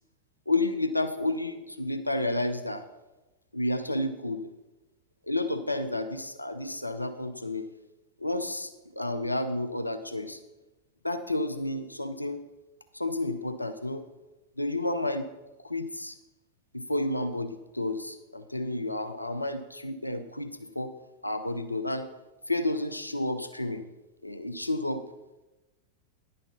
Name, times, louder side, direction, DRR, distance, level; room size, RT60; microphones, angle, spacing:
voice 1, 0.5-2.8 3.5-4.5 5.3-7.7 8.2-10.4 11.0-12.4 12.9-14.0 14.6-15.3 15.6-16.2 16.7-20.9 21.2-22.1 22.5-23.9 24.2-25.0, left 2 dB, 85° left, 10 dB, 0.5 m, -31 dB
10.0 x 6.2 x 5.6 m, 1.1 s
figure-of-eight pair, 90°, 0 cm